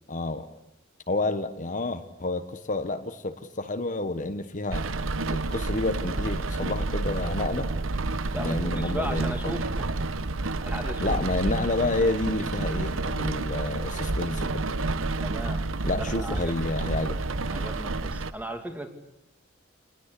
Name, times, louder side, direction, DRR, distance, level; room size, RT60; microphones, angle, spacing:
voice 1, 0.1-0.5 1.1-4.8 5.3-7.7 8.4-9.6 11.0-14.7 15.8-17.2, left 2 dB, 40° left, 8 dB, 1.2 m, -29 dB
Rain, 4.7-18.3, right 2 dB, 70° right, 1.0 m, -29 dB
voice 2, 8.3-9.9 10.4-11.2 15.2-16.7 17.5-18.9, right 1 dB, 10° right, 5 dB, 2.6 m, -37 dB
27.5 x 20.0 x 8.4 m, 0.81 s
head